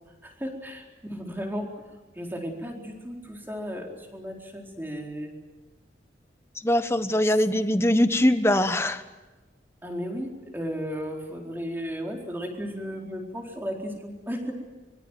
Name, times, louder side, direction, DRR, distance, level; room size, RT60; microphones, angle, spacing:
voice 1, 0.2-1.7 2.1-5.3 9.8-14.5, equal, 10° right, 1 dB, 4.2 m, -34 dB
voice 2, 6.6-9.0, left 1 dB, 15° left, 9 dB, 1.3 m, -22 dB
24.5 x 23.5 x 9.3 m, 1.2 s
head